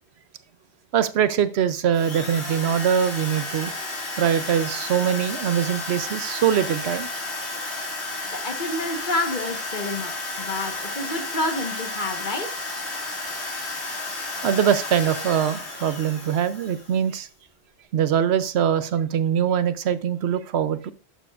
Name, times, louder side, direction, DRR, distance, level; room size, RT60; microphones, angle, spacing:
voice 1, 0.9-3.7 4.2-7.1 14.1-17.3 17.9-20.9, right 9 dB, 75° right, 14 dB, 0.9 m, -23 dB
Drill, 1.9-17.1, left 2 dB, 75° left, 2.5 m, -32 dB
voice 2, 8.3-12.5, left 2 dB, 45° left, 5 dB, 1.3 m, -29 dB
11.0 x 7.1 x 2.4 m, 0.36 s
omnidirectional pair, 1.1 m